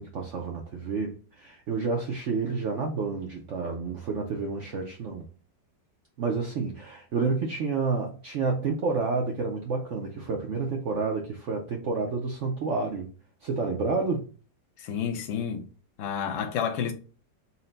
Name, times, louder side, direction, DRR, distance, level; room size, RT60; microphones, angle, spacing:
voice 1, 0.0-5.3 6.2-13.1 13.4-14.2, right 4 dB, 75° right, 0.6 m, -29 dB
voice 2, 14.8-15.7 16.0-16.9, left 7 dB, 65° left, 0.8 m, -30 dB
4.2 x 2.1 x 3.8 m
omnidirectional pair, 2.0 m